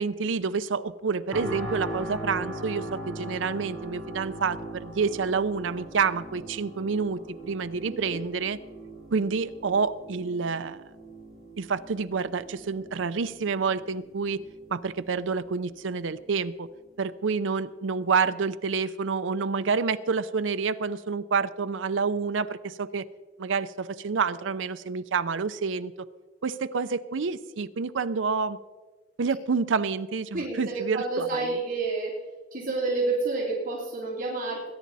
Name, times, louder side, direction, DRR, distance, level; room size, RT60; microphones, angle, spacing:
voice 1, 0.0-8.6 9.1-10.8 11.6-14.4 14.7-16.7 17.0-23.0 23.4-25.9 26.4-28.6 29.2-31.5, right 5 dB, 90° right, 12 dB, 0.5 m, -28 dB
sound 1, 1.3-16.3 16.8-17.0, right 1 dB, ahead, 5.1 m, -40 dB
voice 2, 7.9-8.2 30.3-32.1 32.5-34.7, right 3 dB, 45° right, -4 dB, 3.1 m, -29 dB
21.5 x 10.5 x 4.1 m, 1.3 s
head